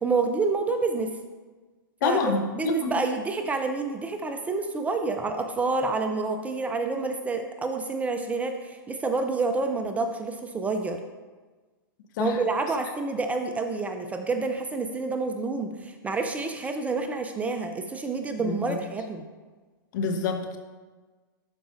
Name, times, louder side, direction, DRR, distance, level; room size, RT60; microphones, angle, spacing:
voice 1, 0.0-1.2 2.0-2.2 2.6-11.0 12.2-19.3, right 3 dB, 10° right, 6 dB, 0.4 m, -28 dB
voice 2, 2.0-2.9 12.2-12.4 18.4-18.8 19.9-20.6, left 4 dB, 55° left, 6 dB, 0.9 m, -27 dB
11.5 x 4.9 x 2.6 m, 1.3 s
hypercardioid pair, 130°, 12 cm